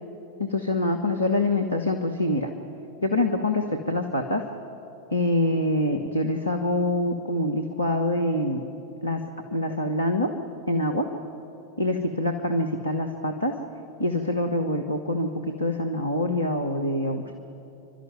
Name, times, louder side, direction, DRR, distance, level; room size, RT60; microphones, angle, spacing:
voice 1, 0.4-2.5 3.0-4.4 5.1-8.6 9.0-9.2 9.5-10.3 10.7-11.1 11.8-13.5 14.0-17.3, left 1 dB, 80° left, 4 dB, 1.3 m, -25 dB
29.5 x 12.5 x 9.4 m, 2.9 s
figure-of-eight pair, 90°, 0 cm